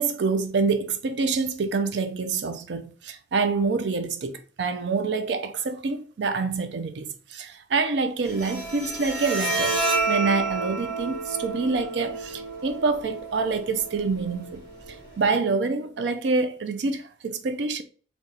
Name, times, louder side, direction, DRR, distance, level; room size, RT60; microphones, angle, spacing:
voice 1, 0.0-14.6 14.9-17.8, right 4 dB, 80° right, 0.4 m, -26 dB
Bowed string instrument, 8.2-15.2, right 3 dB, 25° right, 1.9 m, -30 dB
3.8 x 2.3 x 3.9 m
head